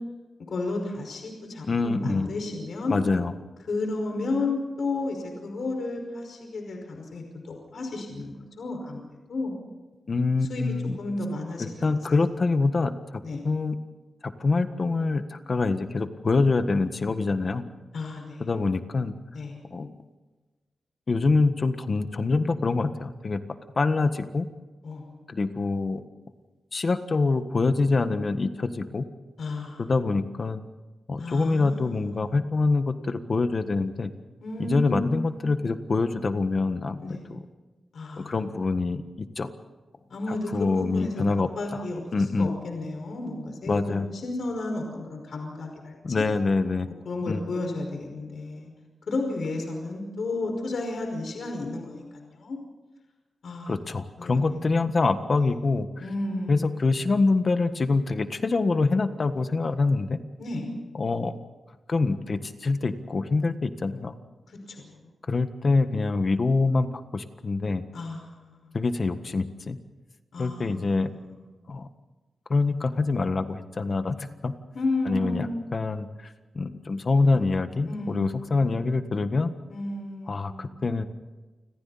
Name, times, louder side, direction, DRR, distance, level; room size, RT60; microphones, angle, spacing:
voice 1, 0.5-3.0 3.7-9.6 10.5-10.6 11.0-12.3 13.2-13.4 17.9-18.5 19.3-19.6 24.8-25.1 29.4-29.9 31.2-32.4 34.4-35.7 37.0-37.3 37.9-38.4 40.1-41.2 41.6-46.2 47.1-48.7 49.1-52.6 53.4-53.8 54.2-54.8 56.0-56.9 60.4-60.7 64.5-65.1 67.9-68.8 70.3-71.5 74.7-75.8 77.2-77.6 77.8-78.9 79.7-80.9, left 2 dB, 60° left, 2 dB, 5.3 m, -33 dB
voice 2, 1.7-2.3 2.9-3.3 10.1-11.0 11.6-12.9 13.4-13.8 14.2-17.6 18.4-19.1 19.7-19.9 21.1-23.4 23.8-24.5 25.3-26.0 26.7-29.0 29.8-30.6 31.1-34.1 34.6-37.4 38.2-39.5 40.5-41.5 42.1-42.6 43.7-44.1 46.0-46.9 47.3-47.4 53.7-55.9 56.5-60.2 61.0-61.3 61.9-64.1 65.3-66.9 67.1-67.8 68.7-69.8 70.4-71.1 71.7-71.9 72.5-74.5 75.0-79.5 80.3-81.0, left 3 dB, 35° left, 9 dB, 1.5 m, -25 dB
30.0 x 26.0 x 4.2 m, 1.2 s
wide cardioid pair, 165°, 0 cm